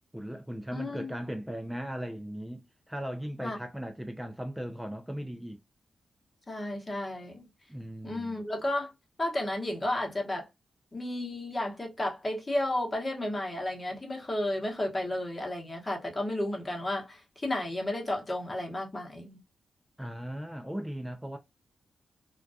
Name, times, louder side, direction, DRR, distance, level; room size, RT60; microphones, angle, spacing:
voice 1, 0.1-5.6 7.7-8.4 20.0-21.4, equal, 5° right, 0.4 m, -38 dB
voice 2, 0.7-1.2 3.4-3.6 6.5-7.4 8.0-8.9 9.2-10.5 10.9-19.4, left 1 dB, 30° left, 1.0 m, -32 dB
2.3 x 2.2 x 2.6 m
supercardioid pair, 45°, 0 cm